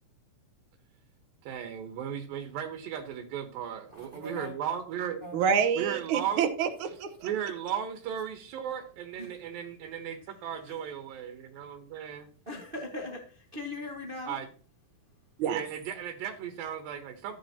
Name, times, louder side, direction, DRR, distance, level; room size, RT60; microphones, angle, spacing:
voice 1, 1.4-5.2 5.8-6.4 7.2-12.3 14.3-14.5 15.4-17.4, right 9 dB, 90° right, 5 dB, 2.8 m, -36 dB
voice 2, 3.9-4.5 5.2-5.3 9.2-9.3 12.5-14.4, left 2 dB, 55° right, 1 dB, 0.6 m, -39 dB
voice 3, 5.3-7.3 15.4-15.6, right 7 dB, 70° right, 9 dB, 2.2 m, -27 dB
14.0 x 8.5 x 2.8 m, 0.41 s
omnidirectional pair, 4.0 m